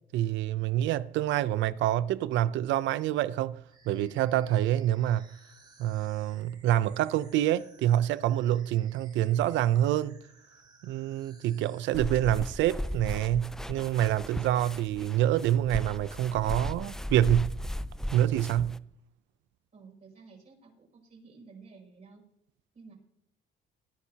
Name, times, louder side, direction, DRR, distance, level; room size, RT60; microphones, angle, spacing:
voice 1, 0.1-5.3 5.8-10.2 10.8-17.6 18.1-18.8, right 12 dB, 85° right, 0.6 m, -27 dB
sound 1, 3.7-13.3, right 3 dB, 25° right, 5.2 m, -59 dB
sound 2, 11.9-18.8, left 1 dB, 5° left, 0.4 m, -37 dB
voice 2, 19.7-22.2 22.7-22.9, right 4 dB, 45° right, 6.2 m, -52 dB
21.0 x 10.0 x 2.9 m
cardioid pair, 95°, 19 cm